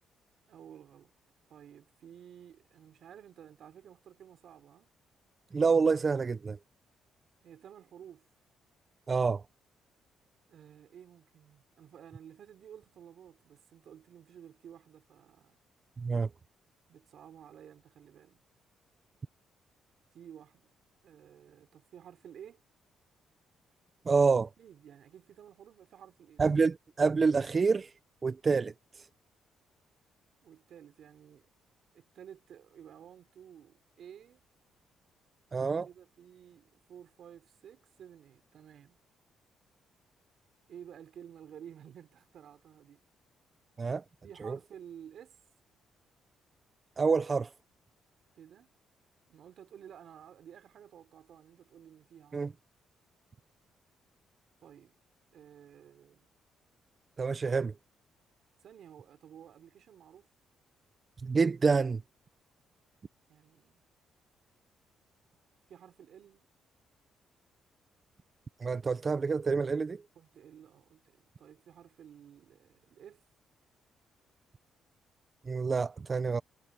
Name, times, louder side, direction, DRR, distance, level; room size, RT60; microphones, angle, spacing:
voice 1, 0.5-1.1 1.5-4.9 7.4-8.2 10.5-15.6 16.9-18.4 20.1-20.6 21.0-22.6 24.6-26.5 30.4-31.5 31.9-34.4 35.5-39.0 40.7-43.0 44.2-45.4 48.3-48.7 49.3-52.4 54.6-54.9 55.3-56.3 58.6-60.3 63.3-63.8 65.7-66.5 70.2-73.2, right 9 dB, 65° right, 3.9 m, -53 dB
voice 2, 5.5-6.6 9.1-9.4 16.0-16.3 24.1-24.5 26.4-27.9 28.2-28.7 35.5-35.9 43.8-44.0 44.4-44.6 47.0-47.5 52.3-52.5 57.2-57.7 61.2-62.0 68.6-70.0 75.5-76.4, right 4 dB, 35° right, 0.6 m, -27 dB
cardioid pair, 90°, 0 cm